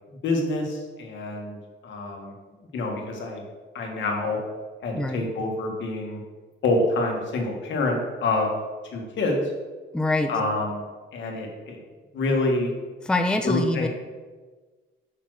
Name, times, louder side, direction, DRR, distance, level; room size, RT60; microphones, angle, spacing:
voice 1, 0.1-1.6 1.8-2.3 2.7-3.4 3.7-4.4 4.8-6.2 6.6-8.6 8.9-9.5 10.3-10.8 11.1-11.8 12.1-12.7 13.4-13.9, left 2 dB, 70° left, 1 dB, 1.6 m, -26 dB
voice 2, 4.9-5.3 9.9-10.3 13.1-13.9, left 2 dB, 5° left, 5 dB, 0.5 m, -24 dB
5.6 x 4.2 x 6.3 m, 1.3 s
cardioid pair, 90°, 20 cm